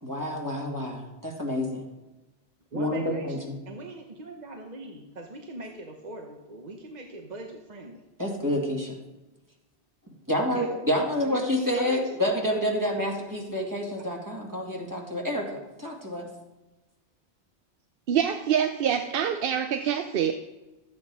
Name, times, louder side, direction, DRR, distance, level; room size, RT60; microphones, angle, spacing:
voice 1, 0.0-1.8 2.7-3.4 8.2-8.9 10.3-16.3, left 1 dB, 20° right, -1 dB, 2.1 m, -28 dB
voice 2, 2.7-8.0 10.5-10.7 11.1-11.5 11.7-12.6 13.6-13.7, right 2 dB, 45° right, 2 dB, 1.1 m, -41 dB
voice 3, 18.1-20.3, right 8 dB, 65° right, 8 dB, 0.8 m, -25 dB
12.5 x 8.5 x 4.8 m, 1.1 s
omnidirectional pair, 1.1 m